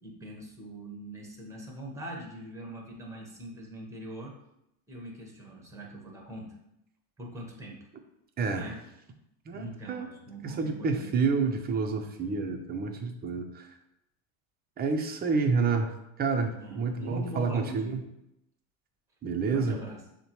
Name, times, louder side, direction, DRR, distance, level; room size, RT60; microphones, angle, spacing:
voice 1, 0.0-4.3 4.9-6.5 7.2-7.8 8.5-8.8 9.5-11.1 16.5-18.0 19.5-20.0, right 1 dB, 5° right, -1 dB, 1.1 m, -42 dB
voice 2, 8.4-8.7 9.5-10.1 10.4-13.7 14.8-18.0 19.2-19.8, right 4 dB, 25° right, 4 dB, 0.6 m, -29 dB
6.6 x 2.2 x 3.0 m, 0.84 s
supercardioid pair, 120°, 40 cm